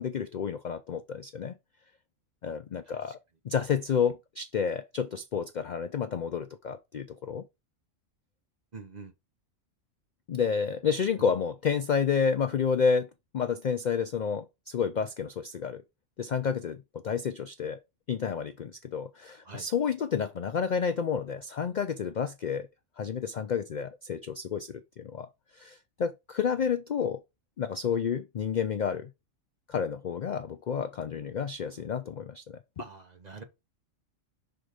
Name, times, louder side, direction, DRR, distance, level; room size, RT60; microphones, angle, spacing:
voice 1, 0.0-1.6 2.4-3.2 3.4-7.4 10.3-13.1 13.3-15.8 16.2-17.8 18.1-22.7 23.0-25.3 25.6-27.2 27.6-29.1 29.7-32.6, left 6 dB, 60° left, 0.4 m, -30 dB
voice 2, 8.7-9.1 11.2-11.3 19.4-19.7 32.8-33.4, right 4 dB, 35° right, 1.0 m, -44 dB
5.8 x 3.9 x 4.9 m
omnidirectional pair, 1.3 m